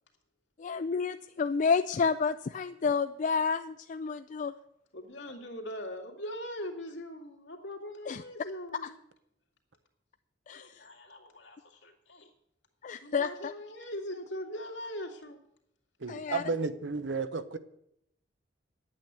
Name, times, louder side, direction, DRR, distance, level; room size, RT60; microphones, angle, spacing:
voice 1, 0.6-4.5 8.1-8.2 8.8-8.9 10.5-10.9 12.8-13.5 16.1-16.4, left 5 dB, 45° left, 10 dB, 0.4 m, -30 dB
voice 2, 4.9-9.0 10.5-12.3 13.0-15.4, equal, 75° left, 2 dB, 2.4 m, -41 dB
voice 3, 16.0-17.6, right 4 dB, 90° right, 12 dB, 0.9 m, -33 dB
10.5 x 8.7 x 8.1 m, 0.76 s
head